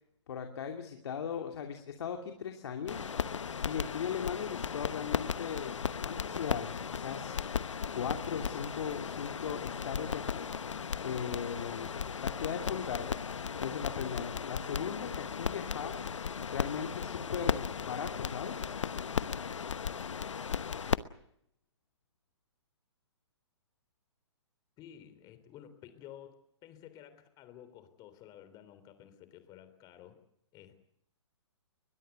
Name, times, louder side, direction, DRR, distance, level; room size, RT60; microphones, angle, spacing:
voice 1, 0.3-3.1 3.6-7.4 7.9-10.5 11.0-11.9 12.2-13.2 13.6-16.0 16.5-18.7, left 7 dB, 65° left, 4 dB, 2.7 m, -38 dB
sound 1, 2.9-21.0, left 6 dB, 85° left, 1.0 m, -36 dB
voice 2, 24.8-30.2 30.5-30.8, left 10 dB, 25° left, 11 dB, 3.5 m, -53 dB
22.0 x 21.5 x 8.1 m, 0.75 s
hypercardioid pair, 135°, 15 cm